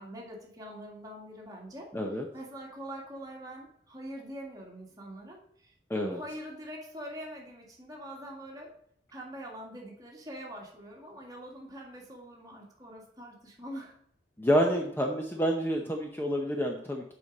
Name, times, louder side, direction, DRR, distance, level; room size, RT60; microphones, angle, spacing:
voice 1, 0.0-5.7 6.0-8.7 9.1-13.9, equal, 20° right, -1 dB, 1.9 m, -44 dB
voice 2, 1.9-2.3 5.9-6.2 14.4-17.1, equal, 10° left, 1 dB, 0.7 m, -28 dB
6.9 x 5.1 x 7.2 m, 0.69 s
head